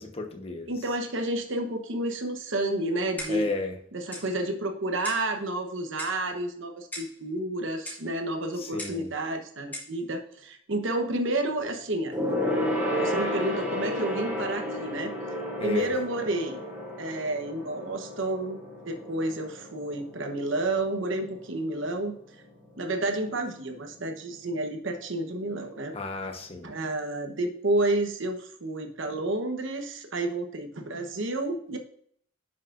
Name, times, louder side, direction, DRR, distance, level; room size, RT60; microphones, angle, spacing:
voice 1, 0.0-0.9 3.3-3.8 8.5-9.1 15.6-15.9 25.9-26.7, left 3 dB, 30° left, 3 dB, 1.0 m, -33 dB
voice 2, 0.7-3.5 3.9-12.1 12.6-15.1 15.6-16.6 17.0-18.6 18.8-22.1 22.8-25.9 26.6-31.8, right 2 dB, 65° right, 4 dB, 1.0 m, -30 dB
Clock, 3.2-3.5 4.1-4.3 5.0-5.3 6.0-6.3 6.9-7.2 7.9-8.1 8.8-9.1 9.7-10.0, left 1 dB, 10° left, 1.6 m, -39 dB
Gong, 12.1-21.9 22.2-22.5 22.8-22.9, equal, 10° right, 1.6 m, -32 dB
10.5 x 5.8 x 2.5 m, 0.62 s
head